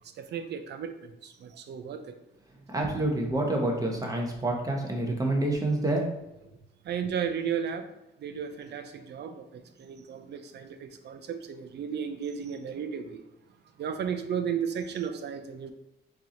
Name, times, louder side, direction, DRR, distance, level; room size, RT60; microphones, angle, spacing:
voice 1, 0.2-2.0 6.8-7.9 8.2-13.2 13.8-15.7, right 7 dB, 60° right, 8 dB, 0.5 m, -34 dB
voice 2, 2.7-6.0, right 1 dB, 15° right, 0 dB, 1.1 m, -27 dB
4.6 x 2.9 x 3.9 m, 0.92 s
cardioid pair, 90°, 20 cm